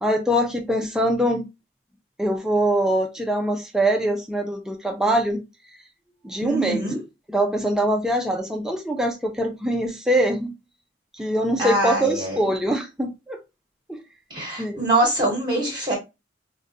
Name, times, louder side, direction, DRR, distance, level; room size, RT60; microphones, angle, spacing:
voice 1, 0.0-1.5 2.2-5.4 6.2-6.9 7.3-10.5 11.2-13.4 13.9-14.0 14.6-14.8, right 1 dB, 5° right, 0.4 m, -23 dB
voice 2, 6.4-7.0 11.6-12.5 14.3-15.9, right 1 dB, 25° right, 0.9 m, -24 dB
3.7 x 2.2 x 2.6 m
head